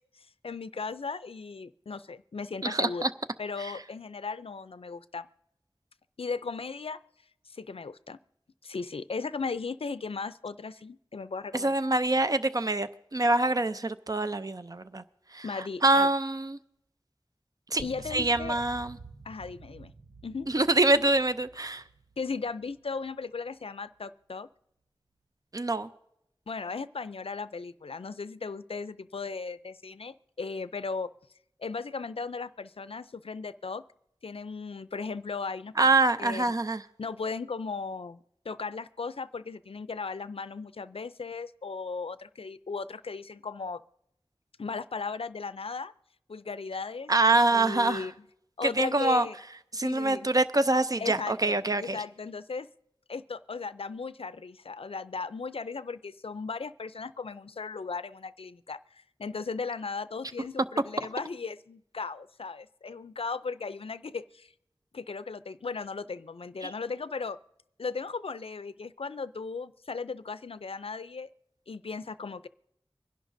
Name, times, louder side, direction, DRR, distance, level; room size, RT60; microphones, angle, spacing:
voice 1, 0.2-3.0 3.4-5.3 6.2-7.0 7.5-8.2 8.6-11.7 15.4-16.1 17.8-18.6 19.2-19.9 20.2-20.5 21.0-21.1 22.2-24.5 26.5-31.1 31.6-33.8 34.2-36.4 37.0-43.8 44.6-45.9 46.3-47.1 47.5-48.1 48.6-49.4 49.8-50.3 51.0-52.7 53.1-64.5 64.9-67.4 67.8-71.3 71.7-72.5, left 4 dB, 80° left, 14 dB, 0.4 m, -37 dB
voice 2, 2.6-3.1 3.6-3.7 11.5-15.0 15.3-16.6 17.7-17.8 18.1-19.0 20.5-21.8 25.5-25.9 35.8-36.8 47.1-48.1 48.6-49.3 49.7-52.0, right 2 dB, 40° right, 11 dB, 0.5 m, -25 dB
sound 1, 17.8-23.2, right 3 dB, 75° right, 0.7 m, -48 dB
24.5 x 11.0 x 2.6 m, 0.78 s
wide cardioid pair, 55°, 10 cm